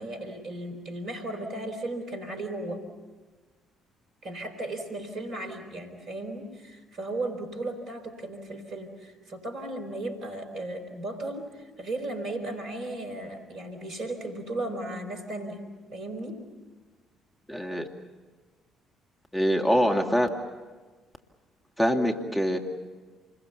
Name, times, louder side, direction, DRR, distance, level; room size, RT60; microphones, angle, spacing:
voice 1, 0.0-2.8 4.2-15.6 15.9-16.4, right 2 dB, 60° right, 4 dB, 4.2 m, -35 dB
voice 2, 17.5-17.9 19.3-20.3 21.8-22.6, equal, 10° left, 3 dB, 2.3 m, -24 dB
28.5 x 22.0 x 7.1 m, 1.4 s
figure-of-eight pair, 45°, 0 cm